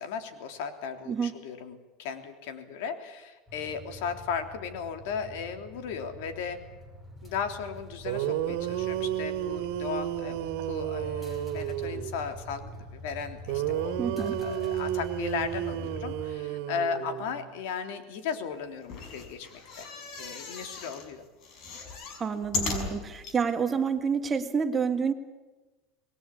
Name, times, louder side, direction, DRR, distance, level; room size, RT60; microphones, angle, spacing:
voice 1, 0.0-6.6 7.2-19.9 20.2-21.2, left 6 dB, 75° left, 7 dB, 3.3 m, -36 dB
sound 1, 3.5-16.2, equal, 10° left, 6.2 m, -44 dB
sound 2, 7.8-7.9 8.0-12.2 13.5-17.5, right 12 dB, 75° right, 2.2 m, -32 dB
voice 2, 14.0-14.4 22.2-25.1, right 6 dB, 20° right, 7 dB, 1.8 m, -28 dB
sound 3, 18.8-21.1 21.4-23.4 24.0-24.1 24.2-24.3, left 4 dB, 45° left, 5.4 m, -37 dB
26.5 x 20.5 x 8.6 m, 1.2 s
cardioid pair, 155°, 0 cm